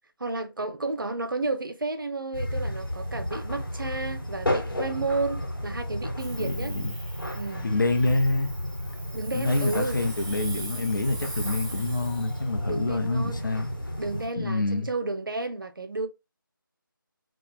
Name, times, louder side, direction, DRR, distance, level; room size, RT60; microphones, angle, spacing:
voice 1, 0.2-6.7 7.3-7.7 9.1-10.0 12.6-13.6 14.0-16.1, right 2 dB, 70° right, 0.6 m, -32 dB
sound 1, 2.3-14.3, equal, 85° left, 1.2 m, -33 dB
Hiss, 6.2-12.5, right 2 dB, 15° right, 0.4 m, -42 dB
voice 2, 6.4-6.9 7.6-8.5 9.3-13.7 14.4-14.9, left 2 dB, 65° left, 0.7 m, -26 dB
2.3 x 2.0 x 3.0 m
figure-of-eight pair, 160°, 12 cm